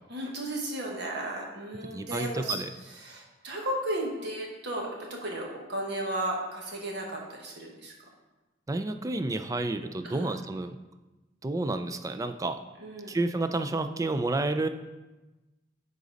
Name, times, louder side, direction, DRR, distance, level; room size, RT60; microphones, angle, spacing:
voice 1, 0.1-2.5 2.8-7.9 10.0-10.3 12.8-13.2, right 1 dB, 60° right, -1 dB, 1.4 m, -34 dB
voice 2, 1.9-2.7 8.7-10.8 11.4-12.6 13.1-14.7, right 2 dB, 15° right, 9 dB, 0.3 m, -30 dB
9.8 x 4.0 x 3.9 m, 1.1 s
head